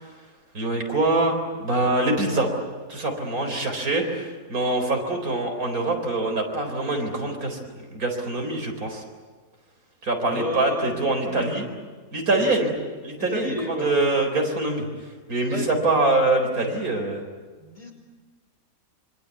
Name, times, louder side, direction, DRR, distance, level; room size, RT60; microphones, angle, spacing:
voice 1, 0.5-2.5 2.9-7.6 7.9-9.0 10.0-11.6 12.1-12.7 13.0-13.5 13.8-14.9 15.3-17.2, right 2 dB, 85° right, 3 dB, 4.7 m, -24 dB
voice 2, 10.2-11.8 12.4-12.5 13.2-13.9 15.5-15.7 17.6-17.9, left 1 dB, 25° left, 2 dB, 5.2 m, -32 dB
26.0 x 25.0 x 8.5 m, 1.4 s
omnidirectional pair, 1.5 m